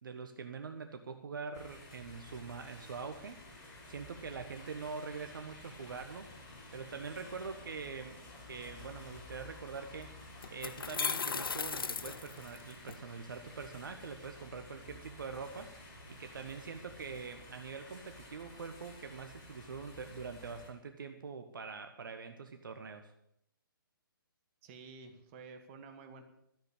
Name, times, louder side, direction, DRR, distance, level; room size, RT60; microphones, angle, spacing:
voice 1, 0.0-6.3 6.7-8.2 8.5-15.8 16.1-23.1, right 5 dB, 65° right, 7 dB, 1.3 m, -44 dB
sound 1, 1.5-20.7, left 2 dB, 30° left, 6.0 m, -52 dB
sound 2, 9.8-9.9 10.4-12.9, left 5 dB, 75° left, 0.7 m, -36 dB
voice 2, 24.6-26.2, right 4 dB, 35° right, 6 dB, 2.1 m, -51 dB
13.5 x 7.9 x 8.7 m, 0.74 s
figure-of-eight pair, 135°, 12 cm